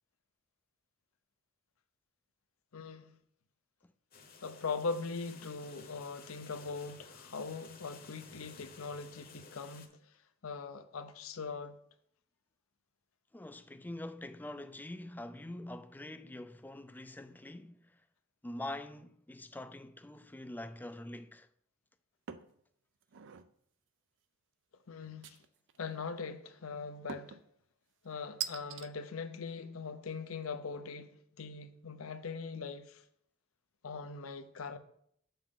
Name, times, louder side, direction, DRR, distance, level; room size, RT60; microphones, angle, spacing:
voice 1, 2.7-3.1 4.4-9.9 10.4-11.8 24.9-25.4 25.8-27.4 28.0-31.1 31.4-33.0 33.8-34.8, left 4 dB, 80° left, 0.7 m, -41 dB
sound 1, 4.1-9.9, left 5 dB, 45° left, 1.0 m, -54 dB
voice 2, 13.3-18.0 18.4-21.5, left 1 dB, 10° left, 0.4 m, -45 dB
sound 2, 22.3-22.6 23.0-23.5 25.2-25.8 27.1-27.5 28.4-28.9, right 8 dB, 60° right, 0.5 m, -42 dB
7.9 x 7.0 x 3.8 m
head